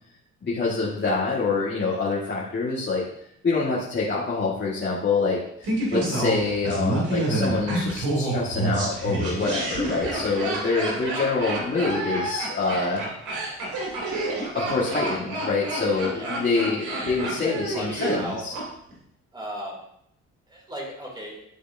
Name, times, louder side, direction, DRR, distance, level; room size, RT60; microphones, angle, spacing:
voice 1, 0.4-3.0 3.4-13.1 14.5-18.5, left 4 dB, 35° left, -6 dB, 1.7 m, -26 dB
Laughter, 5.6-18.6 18.9-19.0, right 2 dB, 90° right, 2.7 m, -28 dB
voice 2, 17.2-18.4 19.3-19.8 20.5-21.5, right 1 dB, 15° right, -2 dB, 2.8 m, -36 dB
11.5 x 4.8 x 2.7 m, 0.73 s
cardioid pair, 90°, 30 cm